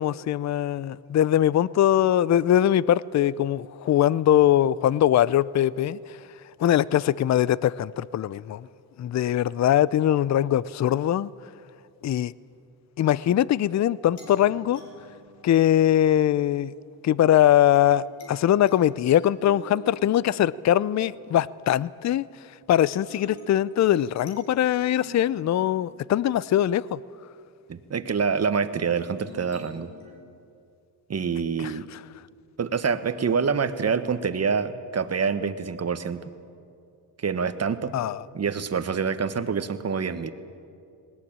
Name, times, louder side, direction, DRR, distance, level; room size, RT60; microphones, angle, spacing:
voice 1, 0.0-6.2 6.6-8.7 9.0-11.3 12.0-12.3 13.0-14.8 15.4-16.7 17.0-22.3 22.7-27.0 31.6-32.0 37.9-38.2, left 11 dB, 40° left, 0.5 m, -22 dB
sound 1, 14.1-16.4 17.7-22.5 23.1-27.2 29.0-30.1, equal, 75° left, 6.5 m, -49 dB
voice 2, 27.7-29.9 31.1-31.9 32.6-36.3 37.2-37.9 38.3-40.3, right 6 dB, 35° right, 1.4 m, -26 dB
19.5 x 18.5 x 8.8 m
cardioid pair, 80°, 41 cm